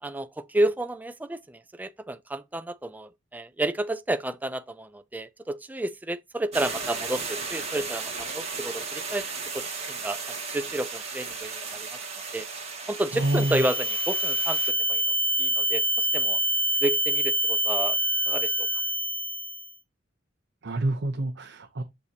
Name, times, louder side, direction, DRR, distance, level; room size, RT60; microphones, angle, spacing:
voice 1, 0.0-9.2 9.5-11.9 12.3-12.5 12.9-15.0 15.4-16.4 16.8-18.0 18.3-18.7, right 1 dB, 10° right, 0.3 m, -31 dB
sound 1, 6.5-14.7, right 4 dB, 35° right, 2.0 m, -35 dB
sound 2, 13.1-19.7, right 1 dB, 15° left, 1.1 m, -26 dB
voice 2, 13.1-13.6 20.6-21.8, right 1 dB, 65° right, 0.7 m, -27 dB
6.6 x 5.4 x 2.8 m
head